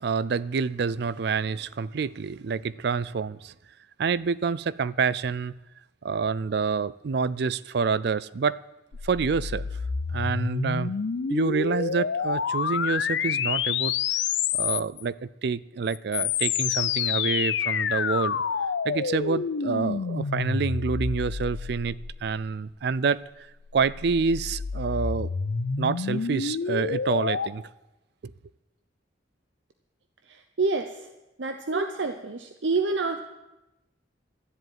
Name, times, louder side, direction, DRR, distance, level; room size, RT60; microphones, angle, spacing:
voice 1, 0.0-3.5 4.0-5.5 6.0-8.6 9.0-9.6 10.1-10.9 11.3-13.9 14.5-18.4 18.8-23.2 23.7-25.3 25.8-27.6 28.2-28.3, right 5 dB, 65° right, 0.4 m, -27 dB
sound 1, 8.9-15.0 15.9-22.5 23.6-27.5, left 6 dB, 80° left, 0.6 m, -28 dB
voice 2, 30.3-31.1 31.4-33.3, right 3 dB, 90° right, 0.8 m, -28 dB
13.0 x 7.9 x 9.3 m
head